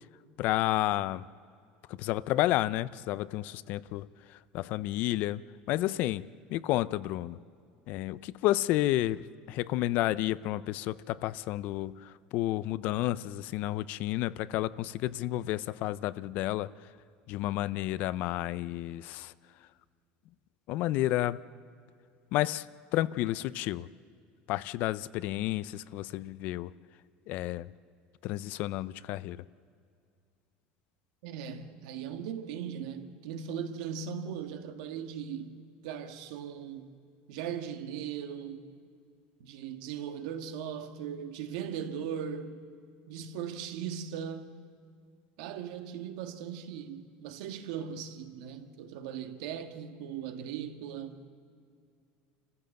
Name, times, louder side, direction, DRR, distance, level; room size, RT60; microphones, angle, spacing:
voice 1, 0.4-1.2 1.9-5.4 5.7-7.4 7.9-16.7 17.3-19.3 20.7-21.4 22.3-22.7 22.9-23.9 24.5-26.7 27.3-27.7 28.2-29.4, left 15 dB, 50° left, 0.5 m, -31 dB
voice 2, 31.2-36.9 37.3-38.7 39.4-42.6 43.1-44.6 45.4-51.2, right 8 dB, 80° right, 1.6 m, -39 dB
28.0 x 15.5 x 7.7 m
cardioid pair, 170°, 4 cm